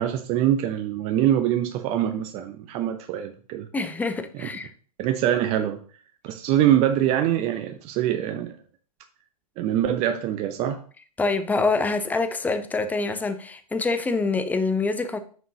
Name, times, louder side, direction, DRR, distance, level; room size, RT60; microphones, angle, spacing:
voice 1, 0.0-3.7 4.4-4.5 5.0-5.8 6.2-8.6 9.6-10.8, right 11 dB, 35° right, 0.6 m, -24 dB
voice 2, 3.7-4.7 11.2-15.2, left 3 dB, 10° left, 0.7 m, -25 dB
9.2 x 6.2 x 2.8 m
hypercardioid pair, 110°, 19 cm